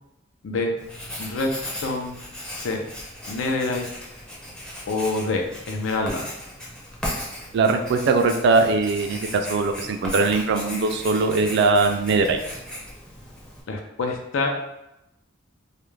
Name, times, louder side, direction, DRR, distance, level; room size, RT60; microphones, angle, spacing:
Writing, 0.8-13.6, equal, 5° left, 0.4 m, -37 dB
voice 1, 1.2-2.2 2.5-2.8 3.3-3.8 4.9-6.3 13.7-14.5, left 3 dB, 90° left, 2 dB, 0.5 m, -26 dB
voice 2, 7.5-12.4, right 3 dB, 60° right, 6 dB, 0.3 m, -21 dB
2.3 x 2.1 x 3.1 m, 0.87 s
head